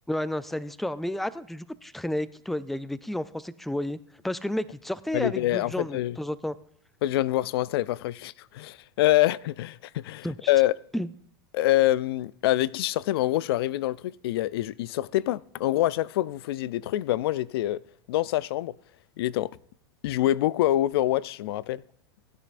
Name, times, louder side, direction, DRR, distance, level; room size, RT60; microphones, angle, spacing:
voice 1, 0.1-4.0 4.2-6.6 10.2-10.4 10.9-11.1, left 1 dB, ahead, 0.3 m, -31 dB
voice 2, 5.1-6.2 7.0-10.7 11.5-17.8 18.1-18.7 19.2-19.5 20.0-21.8, left 15 dB, 75° left, 0.4 m, -25 dB
16.5 x 10.0 x 2.5 m
hypercardioid pair, 120°, 13 cm